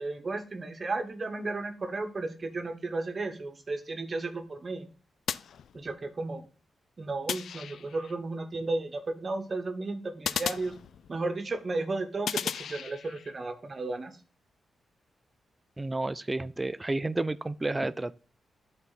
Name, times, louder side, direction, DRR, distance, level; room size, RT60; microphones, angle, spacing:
voice 1, 0.0-4.9 5.7-6.4 7.0-10.7 11.1-14.1, right 3 dB, 30° right, 1.0 m, -34 dB
sound 1, 5.3-6.2 7.3-8.2 10.2-11.4 12.3-13.3, left 8 dB, 75° left, 0.3 m, -35 dB
voice 2, 15.8-18.1, right 2 dB, 15° right, 0.3 m, -31 dB
11.0 x 4.2 x 4.0 m
wide cardioid pair, 170°, 0 cm